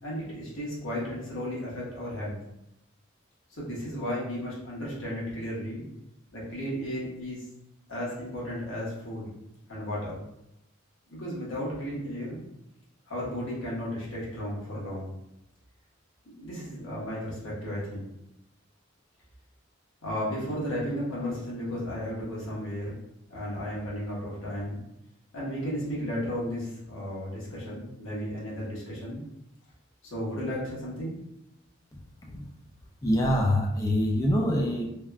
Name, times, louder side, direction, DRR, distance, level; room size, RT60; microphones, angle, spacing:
voice 1, 0.0-2.4 3.6-5.8 6.3-7.4 7.9-9.3 9.7-10.2 11.1-12.4 13.1-15.1 16.4-18.1 20.0-23.0 23.3-24.8 25.3-29.2 30.0-31.1, equal, 80° left, -7 dB, 1.3 m, -34 dB
voice 2, 33.0-34.8, equal, 15° left, 0 dB, 0.3 m, -25 dB
3.3 x 2.2 x 2.3 m, 0.84 s
head